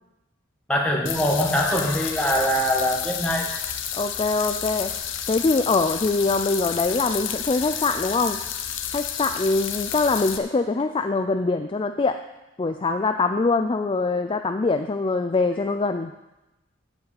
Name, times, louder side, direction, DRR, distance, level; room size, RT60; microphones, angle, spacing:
voice 1, 0.7-3.5, equal, 5° left, -1 dB, 1.8 m, -23 dB
sound 1, 1.1-10.4, left 9 dB, 65° left, 0.9 m, -31 dB
voice 2, 3.9-4.9 5.3-8.4 8.9-12.2 12.6-16.1, left 3 dB, 25° left, 7 dB, 0.4 m, -23 dB
8.0 x 7.2 x 8.3 m, 0.98 s
head